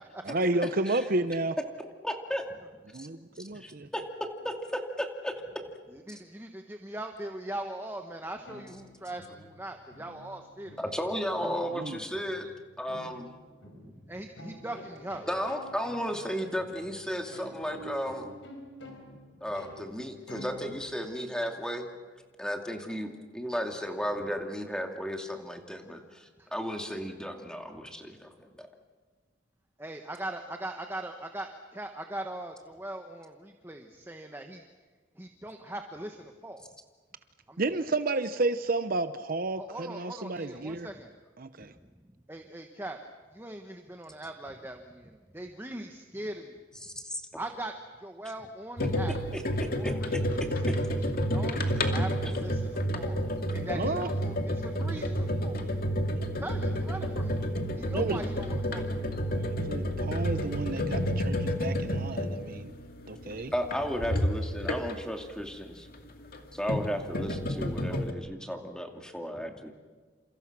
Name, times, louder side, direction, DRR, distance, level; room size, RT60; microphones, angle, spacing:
voice 1, 0.2-1.6 2.9-3.9 11.7-12.0 37.6-40.9 41.4-41.7 53.7-54.1 56.1-56.2 57.9-58.2 59.3-62.7 63.1-63.5, right 2 dB, 50° right, 11 dB, 0.8 m, -31 dB
voice 2, 1.8-2.4 3.0-3.1 3.6-4.0 4.4-5.3 10.8-12.5 12.8-13.3 15.3-18.3 19.4-21.9 22.4-28.7 46.8-47.2 49.3-49.9 58.1-58.4 63.5-65.9 66.5-69.7, equal, 5° left, 3 dB, 2.5 m, -34 dB
voice 3, 3.5-3.9 6.1-10.7 13.6-15.3 26.4-26.5 29.8-34.6 35.2-36.6 37.5-37.6 39.6-41.1 41.6-41.7 42.3-43.0 43.3-46.5 47.3-47.7 48.0-49.2 49.7-50.9 51.3-55.6 56.4-57.4 57.8-59.0 67.9-68.1 69.4-69.7, right 1 dB, 10° right, 4 dB, 1.3 m, -41 dB
sound 1, 8.5-22.0, equal, 70° left, 4.7 m, -49 dB
sound 2, 48.8-65.2 66.2-68.1, equal, 50° left, 2.4 m, -30 dB
29.0 x 28.0 x 6.1 m, 1.4 s
head